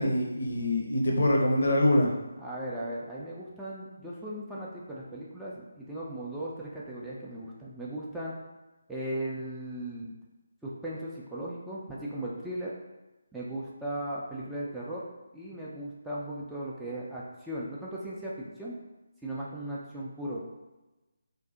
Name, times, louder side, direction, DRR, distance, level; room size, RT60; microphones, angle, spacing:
voice 1, 0.0-2.1, left 1 dB, 55° left, 0 dB, 0.6 m, -24 dB
voice 2, 2.4-8.3 8.9-10.1 10.6-12.7 13.3-15.0 15.3-18.7 19.2-20.4, right 1 dB, 5° right, -8 dB, 0.3 m, -37 dB
2.6 x 2.0 x 3.5 m, 1.1 s
figure-of-eight pair, 150°, 0 cm